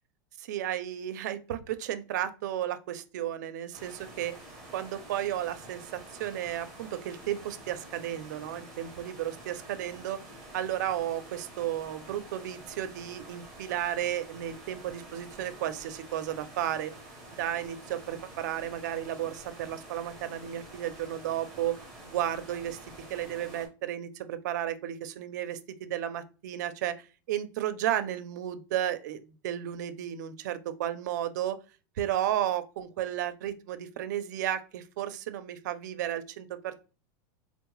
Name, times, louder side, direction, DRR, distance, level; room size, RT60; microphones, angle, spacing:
voice 1, 0.4-4.3 4.7-10.2 10.5-16.9 17.4-21.7 22.1-22.8 23.1-31.6 32.0-36.8, right 11 dB, 60° right, 11 dB, 0.4 m, -33 dB
sound 1, 3.7-23.7, right 1 dB, 5° left, 0.7 m, -48 dB
3.7 x 2.0 x 3.0 m, 0.32 s
supercardioid pair, 175°, 11 cm